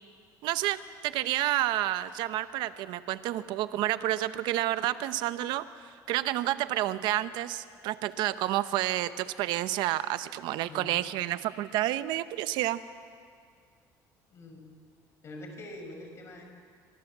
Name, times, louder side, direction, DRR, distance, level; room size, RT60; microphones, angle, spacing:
voice 1, 0.4-5.7 6.1-12.8, right 14 dB, 75° right, 13 dB, 0.9 m, -30 dB
voice 2, 10.7-11.1 14.3-14.7 15.2-16.4, left 1 dB, 35° left, 3 dB, 5.5 m, -44 dB
28.0 x 26.0 x 7.4 m, 2.1 s
cardioid pair, 150°, 8 cm